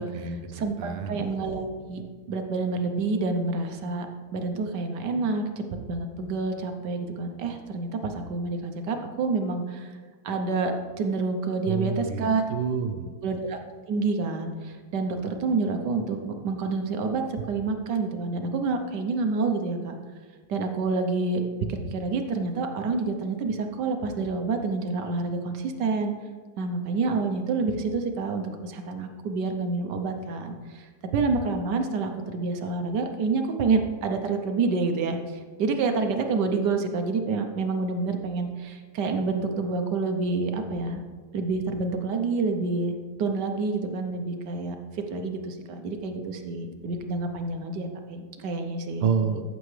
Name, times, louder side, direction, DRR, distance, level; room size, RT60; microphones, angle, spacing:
voice 1, 0.0-1.3 11.6-13.1 49.0-49.4, right 6 dB, 80° right, 7 dB, 1.6 m, -29 dB
voice 2, 0.5-2.0 2.3-4.1 4.3-9.9 10.2-12.4 13.2-13.6 13.9-20.0 20.5-21.4 21.7-26.1 26.6-35.2 35.6-41.0 41.3-49.1, right 3 dB, 60° right, 5 dB, 1.2 m, -28 dB
14.5 x 7.0 x 3.2 m, 1.5 s
omnidirectional pair, 2.4 m